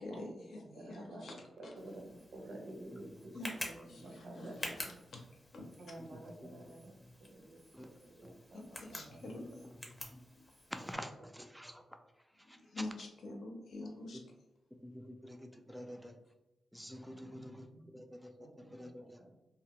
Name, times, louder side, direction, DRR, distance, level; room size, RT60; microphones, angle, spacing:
voice 1, 0.0-1.7 3.3-3.6 3.9-4.5 4.8-5.2 5.5-5.8 8.5-9.7 10.3-10.4 12.4-14.2, left 2 dB, 80° left, 1 dB, 0.6 m, -46 dB
voice 2, 0.7-1.3 1.6-5.0 5.8-9.2 17.1-18.0 18.4-18.9 19.2-19.3, right 1 dB, 75° right, 1 dB, 0.6 m, -51 dB
Tick, 1.8-10.9, left 1 dB, 25° left, 0.7 m, -49 dB
voice 3, 6.0-6.7 7.0-7.1 7.7-7.9 8.2-8.3 9.4-9.5 9.9-10.2 10.7-12.0 12.3-12.8 14.8-16.1 16.7-19.2, equal, ahead, 6 dB, 0.3 m, -49 dB
2.7 x 2.1 x 2.9 m, 0.94 s
cardioid pair, 95°, 0 cm